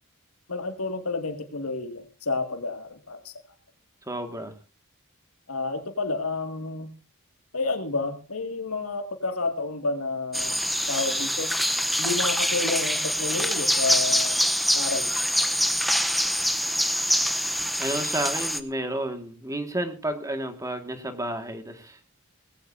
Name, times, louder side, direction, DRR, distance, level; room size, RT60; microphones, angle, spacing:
voice 1, 0.5-3.3 5.5-6.9 7.5-11.5 12.0-14.4 14.7-15.2, left 3 dB, 80° left, 6 dB, 2.2 m, -30 dB
voice 2, 4.1-4.5 17.8-22.0, right 1 dB, 15° right, 6 dB, 1.8 m, -31 dB
sound 1, 10.3-18.6, equal, ahead, 0.8 m, -25 dB
20.0 x 16.0 x 2.7 m, 0.32 s
head